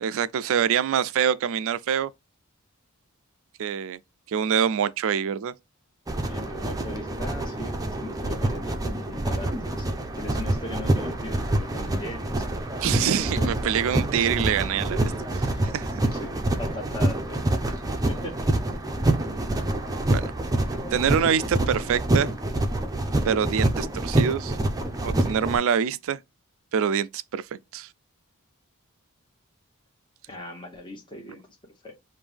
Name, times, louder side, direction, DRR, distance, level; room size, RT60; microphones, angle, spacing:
voice 1, 0.0-2.1 3.6-4.0 4.3-5.5 12.8-16.1 20.1-20.2 20.9-22.3 23.3-24.6 25.0-26.2 26.7-27.9, right 8 dB, 65° right, 0.3 m, -25 dB
sound 1, 6.1-25.6, right 1 dB, 15° right, 0.5 m, -26 dB
voice 2, 6.3-12.5 12.8-13.5 15.1-15.2 15.5-15.6 16.1-17.4 18.1-18.4 30.3-31.9, left 1 dB, 20° left, 0.8 m, -39 dB
5.1 x 2.6 x 3.4 m
head